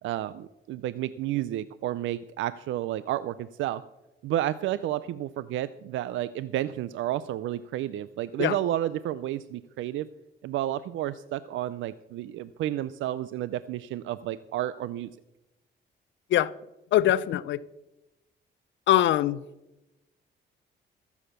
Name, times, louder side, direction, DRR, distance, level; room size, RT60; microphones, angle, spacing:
voice 1, 0.0-3.8 4.2-10.1 10.4-15.1, right 13 dB, 80° right, 16 dB, 0.5 m, -31 dB
voice 2, 16.9-17.6 18.9-19.4, left 13 dB, 70° left, 18 dB, 0.5 m, -22 dB
14.0 x 7.2 x 6.7 m, 0.97 s
cardioid pair, 90°, 20 cm